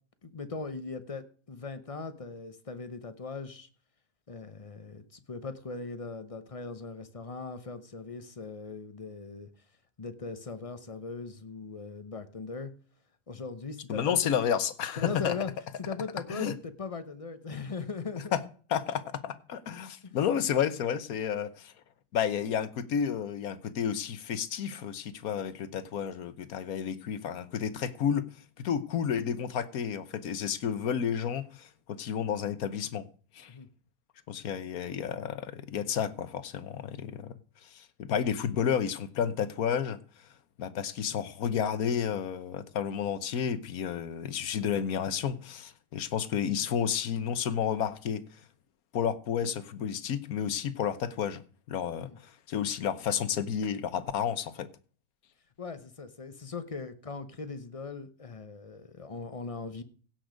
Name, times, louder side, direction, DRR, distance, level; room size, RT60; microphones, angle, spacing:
voice 1, 0.2-3.7 4.3-9.5 10.0-12.7 13.3-14.1 15.0-15.5 15.8-18.3 20.0-20.2 33.5-33.7 52.0-52.2 55.6-59.8, left 4 dB, 30° left, 0.6 m, -39 dB
voice 2, 13.9-15.3 16.3-16.5 18.3-18.4 18.7-21.7 22.1-28.3 28.6-33.0 33.3-33.5 34.3-37.3 37.6-40.0 40.6-48.2 48.9-51.4 51.7-54.7, left 8 dB, 65° left, 1.3 m, -31 dB
16.5 x 6.2 x 5.1 m
omnidirectional pair, 1.8 m